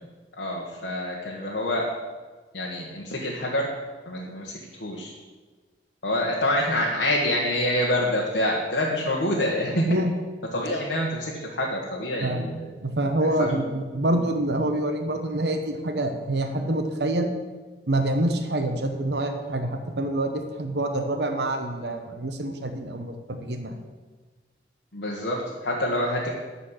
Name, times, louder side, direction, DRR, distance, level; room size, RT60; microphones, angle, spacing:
voice 1, 0.4-1.8 2.5-3.7 4.0-5.1 6.0-9.9 10.5-12.7 13.2-13.5 24.9-26.3, left 1 dB, 65° left, -3 dB, 1.3 m, -26 dB
voice 2, 12.2-12.5 12.8-17.3 17.9-23.8, right 1 dB, 70° right, 6 dB, 0.9 m, -26 dB
11.5 x 4.3 x 8.0 m, 1.3 s
head